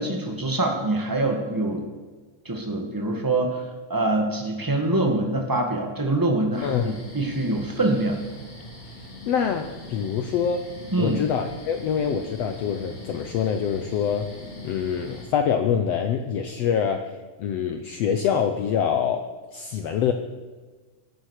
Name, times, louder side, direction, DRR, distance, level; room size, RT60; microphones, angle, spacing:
voice 1, 0.0-1.8 2.4-8.2 10.9-11.2, right 2 dB, 15° right, 2 dB, 0.8 m, -25 dB
sound 1, 6.5-15.3, left 1 dB, 50° left, 4.7 m, -41 dB
voice 2, 6.6-6.9 9.3-10.7 11.0-14.3 14.6-20.1, left 7 dB, 85° left, 7 dB, 1.4 m, -25 dB
17.5 x 12.0 x 6.6 m, 1.4 s
omnidirectional pair, 3.9 m